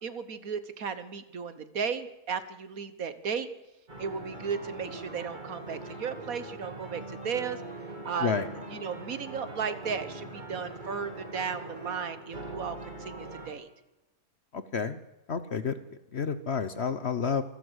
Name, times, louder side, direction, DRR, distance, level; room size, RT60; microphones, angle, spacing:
voice 1, 0.0-3.5 4.0-7.8 8.0-8.3 8.7-13.7, right 6 dB, 60° right, 12 dB, 1.7 m, -35 dB
sound 1, 3.9-13.5, right 2 dB, 30° right, 2.6 m, -42 dB
voice 2, 14.5-15.0 15.3-15.8 16.1-17.4, left 6 dB, 50° left, 12 dB, 1.1 m, -30 dB
27.0 x 12.5 x 8.1 m, 1.0 s
omnidirectional pair, 1.7 m